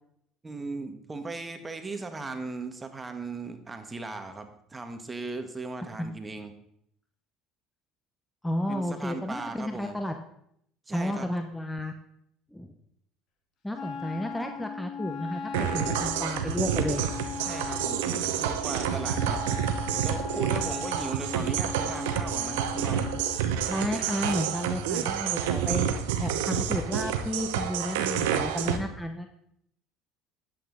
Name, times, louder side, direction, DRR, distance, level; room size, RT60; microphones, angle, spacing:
voice 1, 0.4-6.5 8.7-10.0 10.9-11.3 17.4-19.4 20.0-23.1, right 3 dB, 20° right, 7 dB, 1.4 m, -37 dB
voice 2, 8.4-10.2 10.9-11.9 12.5-12.7 13.6-17.0 23.7-25.9 26.2-29.3, left 1 dB, 5° left, 5 dB, 0.9 m, -32 dB
Wind instrument woodwind instrument, 13.7-23.3, left 5 dB, 55° left, 1.6 m, -38 dB
sound 1, 15.5-28.8, right 9 dB, 90° right, 0.9 m, -29 dB
11.0 x 8.1 x 3.9 m, 0.73 s
supercardioid pair, 95°, 0 cm